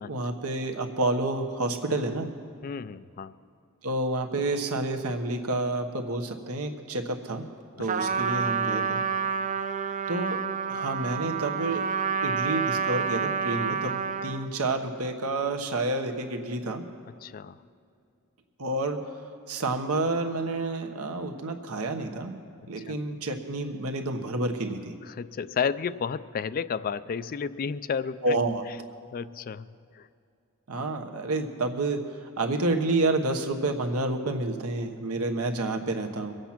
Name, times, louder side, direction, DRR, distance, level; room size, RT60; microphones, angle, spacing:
voice 1, 0.1-2.3 3.8-7.4 7.8-9.0 10.1-10.4 10.7-11.8 12.2-16.8 18.6-19.0 19.5-22.3 22.7-24.9 28.2-28.6 30.7-32.0 32.4-36.4, right 2 dB, 85° right, 4 dB, 1.2 m, -29 dB
voice 2, 2.6-3.3 8.1-8.2 17.2-17.6 22.9-23.0 25.0-28.4 29.1-29.7 29.9-30.1, left 6 dB, 40° left, 15 dB, 0.3 m, -32 dB
Trumpet, 7.9-14.5, right 6 dB, 35° right, 0.4 m, -29 dB
23.0 x 8.0 x 5.9 m, 2.4 s
head